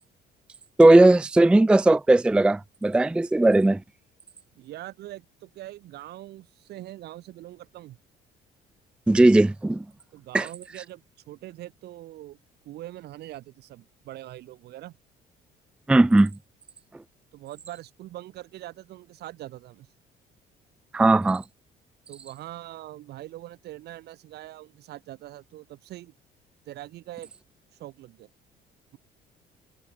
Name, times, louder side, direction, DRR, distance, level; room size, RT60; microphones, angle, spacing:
voice 1, 0.8-3.8 9.1-9.8 10.3-10.5 15.9-16.3 20.9-21.4, right 2 dB, 5° right, 0.4 m, -17 dB
voice 2, 4.6-8.0 10.1-12.4 12.6-15.0 17.3-19.9 22.1-26.1 26.7-27.3 27.8-28.3, right 15 dB, 75° right, 7.1 m, -42 dB
cardioid pair, 110°, 17 cm